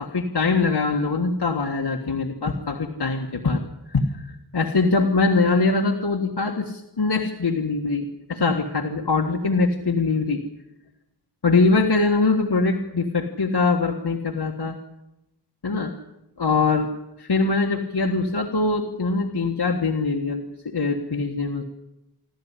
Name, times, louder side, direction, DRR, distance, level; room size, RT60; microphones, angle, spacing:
voice 1, 0.0-3.6 3.9-10.4 11.4-14.8 15.6-15.9 16.4-16.9 17.2-21.6, left 3 dB, 70° left, 2 dB, 1.7 m, -23 dB
26.5 x 12.5 x 9.9 m, 0.88 s
wide cardioid pair, 60°, 41 cm